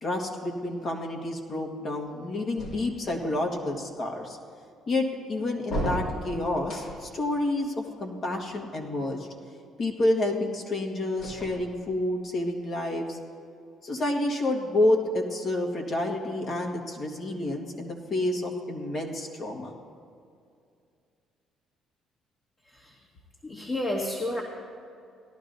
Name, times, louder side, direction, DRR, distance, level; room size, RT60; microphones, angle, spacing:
voice 1, 0.0-4.4 4.9-9.3 9.8-13.2 13.8-19.8, left 1 dB, 50° left, 0 dB, 1.7 m, -29 dB
sound 1, 2.6-3.3 5.6-7.2 11.1-12.1, right 1 dB, 70° left, 2.6 m, -34 dB
voice 2, 22.6-23.0 23.4-24.4, left 1 dB, 30° left, -2 dB, 1.5 m, -31 dB
18.0 x 11.5 x 2.7 m, 2.4 s
supercardioid pair, 75°, 0 cm